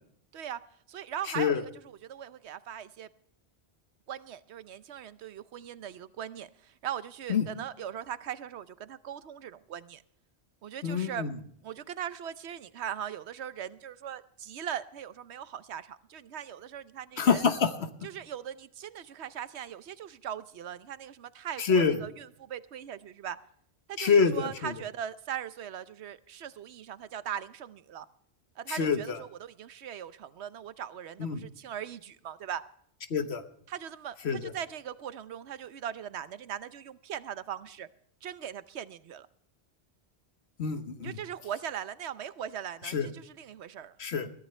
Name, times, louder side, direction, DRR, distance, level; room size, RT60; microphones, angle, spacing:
voice 1, 0.9-3.1 4.1-10.0 10.6-11.3 11.6-17.4 18.0-23.4 23.9-28.1 28.6-32.6 33.7-37.9 38.2-39.3 41.0-44.0, right 9 dB, 90° right, 14 dB, 1.0 m, -40 dB
voice 2, 10.8-11.3 17.2-17.7 21.6-22.0 24.0-24.7 28.7-29.2 31.2-31.5 33.1-33.4 34.2-34.5 40.6-41.2 42.8-43.1 44.0-44.3, left 5 dB, 75° left, 9 dB, 1.3 m, -26 dB
21.5 x 14.0 x 3.3 m, 0.66 s
omnidirectional pair, 1.1 m